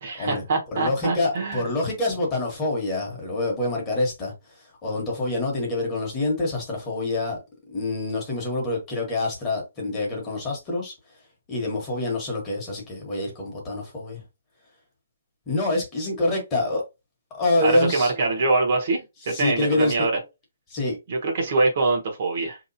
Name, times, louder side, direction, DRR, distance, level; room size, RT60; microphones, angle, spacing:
voice 1, 0.0-1.6 17.6-19.0 19.3-20.1 21.1-22.6, right 3 dB, 45° right, 1.1 m, -24 dB
voice 2, 0.7-7.4 7.7-10.9 11.5-14.2 15.5-16.8 17.3-18.1 19.2-20.1 20.7-21.0, left 2 dB, 15° left, 1.2 m, -26 dB
4.7 x 2.9 x 2.6 m
hypercardioid pair, 170°, 0 cm